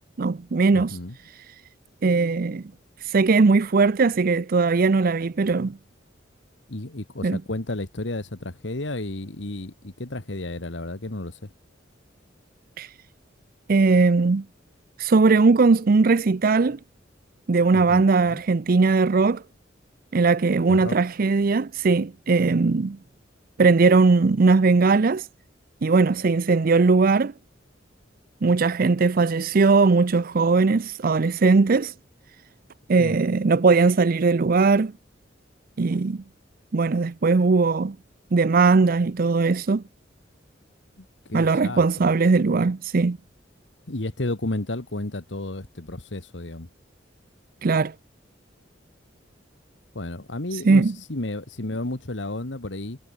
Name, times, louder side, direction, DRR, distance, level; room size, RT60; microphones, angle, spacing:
voice 1, 0.2-1.0 2.0-2.6 3.0-5.8 7.2-7.4 12.8-12.9 13.7-14.4 15.0-16.8 17.5-19.4 20.1-23.0 23.6-25.3 25.8-27.3 28.4-31.9 32.9-34.9 35.8-36.2 36.7-38.0 38.3-39.8 41.3-43.2 47.6-47.9 50.7-50.9, right 4 dB, 50° right, 0.5 m, -19 dB
voice 2, 0.7-1.2 6.7-11.5 17.7-18.4 20.7-21.0 33.0-33.2 41.0-41.8 43.9-46.7 49.9-53.0, left 2 dB, 75° left, 1.8 m, -32 dB
head